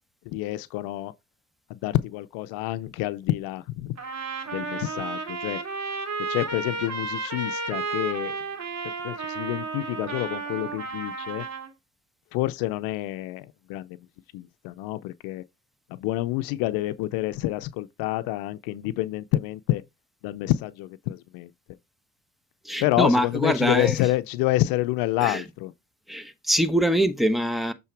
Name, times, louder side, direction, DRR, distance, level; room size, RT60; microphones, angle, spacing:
voice 1, 0.3-1.1 1.7-4.0 4.5-5.6 6.3-8.4 9.0-11.5 12.3-14.1 14.3-15.4 15.9-19.8 20.2-21.5 22.8-25.7, left 16 dB, 85° left, 0.6 m, -28 dB
Trumpet, 4.0-11.7, right 4 dB, 50° right, 2.5 m, -32 dB
voice 2, 22.6-23.9 25.2-25.4 26.1-27.7, equal, ahead, 1.2 m, -23 dB
7.5 x 3.8 x 4.5 m
supercardioid pair, 65°, 35 cm